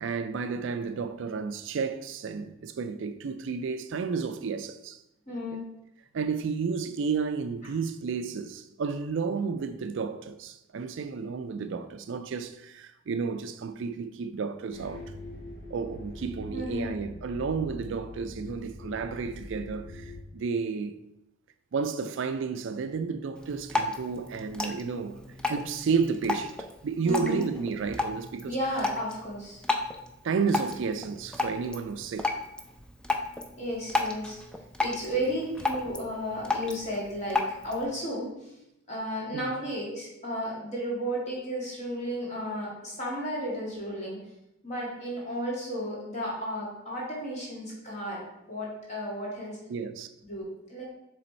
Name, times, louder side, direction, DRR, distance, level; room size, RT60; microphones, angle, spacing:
voice 1, 0.0-5.0 6.1-15.0 15.7-21.0 21.7-25.2 25.5-28.6 30.2-32.4 39.3-39.5 49.7-50.1, right 5 dB, 60° right, 0.4 m, -32 dB
voice 2, 5.3-5.6 16.5-16.9 27.0-27.5 28.4-29.6 33.6-34.4 34.8-38.5 38.9-44.2 44.6-48.2 48.5-49.6 50.2-50.8, equal, 35° left, 2.2 m, -33 dB
sound 1, 14.7-20.2, left 1 dB, 60° left, 1.0 m, -43 dB
Drip, 23.4-37.9, left 3 dB, 5° left, 0.4 m, -34 dB
6.8 x 3.4 x 4.3 m
head